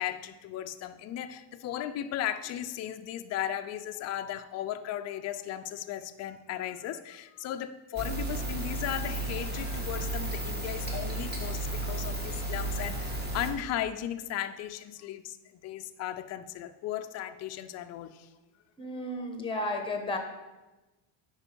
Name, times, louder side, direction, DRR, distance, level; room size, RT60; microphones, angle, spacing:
voice 1, 0.0-18.3 19.2-19.3, left 11 dB, 35° left, 8 dB, 0.4 m, -36 dB
sound 1, 8.0-13.5, right 1 dB, 20° right, 1.4 m, -33 dB
voice 2, 18.8-20.2, left 1 dB, 10° left, 5 dB, 1.0 m, -33 dB
10.0 x 4.4 x 4.5 m, 1.1 s
cardioid pair, 150°, 48 cm